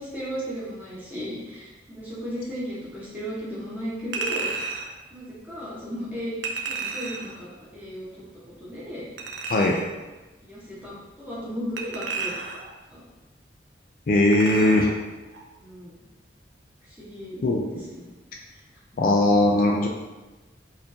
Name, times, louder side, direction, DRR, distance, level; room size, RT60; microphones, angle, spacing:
voice 1, 0.0-4.5 5.1-6.3 6.7-7.5 7.7-8.1 8.6-9.1 10.4-12.3 12.9-13.0 15.6-15.9 16.8-18.1 19.0-19.3, equal, 10° right, -8 dB, 1.0 m, -35 dB
Chink clink, 4.1-4.9 6.4-7.4 9.2-9.9 11.8-12.7 14.3-15.0 15.3-15.5, right 4 dB, 90° right, 0.5 m, -32 dB
voice 2, 14.1-14.9 17.4-17.8 19.0-19.9, left 2 dB, 50° left, 0 dB, 0.4 m, -20 dB
4.3 x 2.5 x 2.7 m, 1.1 s
head